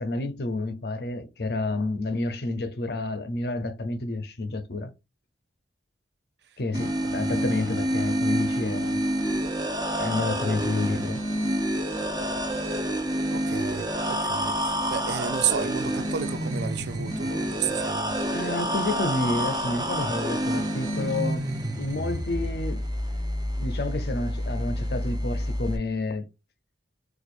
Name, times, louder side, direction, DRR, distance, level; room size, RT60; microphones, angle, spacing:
voice 1, 0.0-4.9 6.6-9.0 10.0-11.3 18.3-21.5 21.8-22.8 23.6-26.3, left 2 dB, 65° left, 0.6 m, -29 dB
sound 1, 6.7-25.8, equal, 25° right, 0.7 m, -28 dB
voice 2, 13.3-18.1, right 8 dB, 70° right, 0.4 m, -32 dB
4.4 x 2.4 x 2.5 m
head